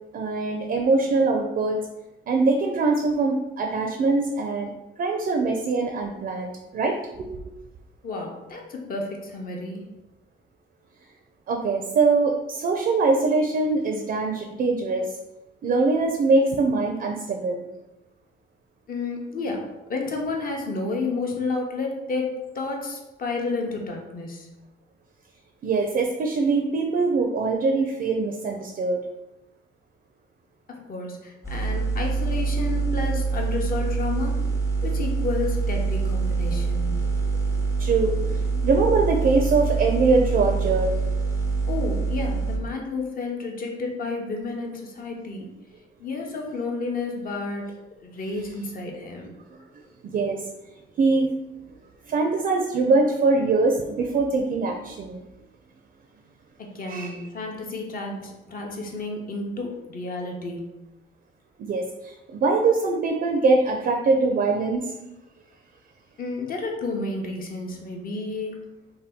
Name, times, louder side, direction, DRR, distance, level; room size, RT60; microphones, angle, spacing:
voice 1, 0.1-1.8 2.3-4.7 5.0-7.3 11.5-15.2 15.6-17.7 25.6-29.0 36.5-36.6 37.8-41.1 49.5-49.6 50.0-50.4 51.0-51.3 52.1-55.2 56.9-57.2 61.6-64.9, right 3 dB, 50° right, 3 dB, 0.4 m, -23 dB
voice 2, 8.0-9.8 18.9-24.5 30.7-34.4 34.8-36.9 41.7-45.5 46.0-47.7 48.0-49.3 56.6-60.7 66.2-68.6, left 3 dB, 45° left, 1 dB, 0.7 m, -31 dB
sound 1, 31.4-42.6, right 4 dB, 15° left, 0.7 m, -25 dB
2.8 x 2.2 x 3.4 m, 0.98 s
cardioid pair, 90°, 20 cm